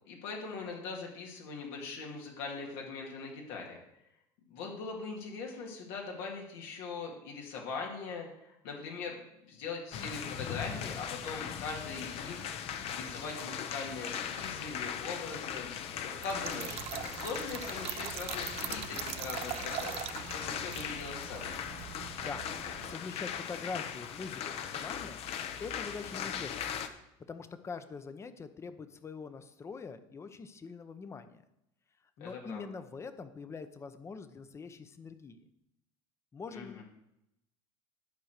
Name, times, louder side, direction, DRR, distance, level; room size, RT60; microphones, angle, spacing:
voice 1, 0.1-3.8 4.5-15.7 16.0-21.5 32.2-32.7 36.5-36.8, left 4 dB, 80° left, 0 dB, 2.3 m, -41 dB
sound 1, 9.9-26.9, left 8 dB, 50° left, 0.9 m, -39 dB
Trickle dribble / Fill (with liquid), 16.2-23.0, right 12 dB, 50° right, 0.6 m, -42 dB
voice 2, 22.8-25.2 25.6-26.8 27.3-31.4 32.2-35.4 36.3-36.8, left 5 dB, 20° left, 11 dB, 0.8 m, -44 dB
12.0 x 4.7 x 6.5 m, 0.84 s
cardioid pair, 130°, 13 cm